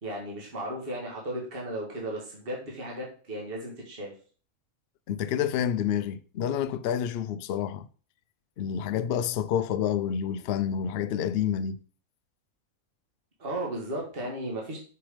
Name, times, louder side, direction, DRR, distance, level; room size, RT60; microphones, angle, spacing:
voice 1, 0.0-4.1 13.4-14.8, right 1 dB, 40° right, 2.0 m, -35 dB
voice 2, 5.1-7.9 8.6-11.8, left 9 dB, 70° left, 0.6 m, -28 dB
6.2 x 5.9 x 5.0 m
omnidirectional pair, 1.6 m